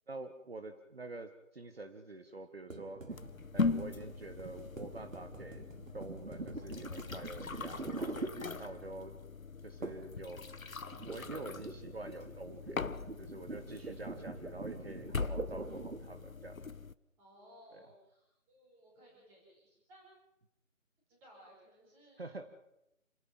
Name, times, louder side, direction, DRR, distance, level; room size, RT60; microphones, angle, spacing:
voice 1, 0.1-3.0 3.5-5.6 5.9-8.2 8.6-9.2 9.6-10.4 11.0-16.6 17.7-17.8 22.2-22.5, right 2 dB, 45° right, 7 dB, 1.9 m, -47 dB
sound 1, 2.7-9.0 9.8-10.2 10.4-16.1, right 3 dB, 75° right, 3.1 m, -44 dB
sound 2, 3.1-16.9, left 4 dB, 85° left, 1.3 m, -41 dB
voice 2, 13.6-14.0 17.2-20.1 21.2-22.2, equal, 5° right, -3 dB, 4.7 m, -60 dB
28.0 x 16.5 x 7.4 m, 0.85 s
figure-of-eight pair, 170°, 40 cm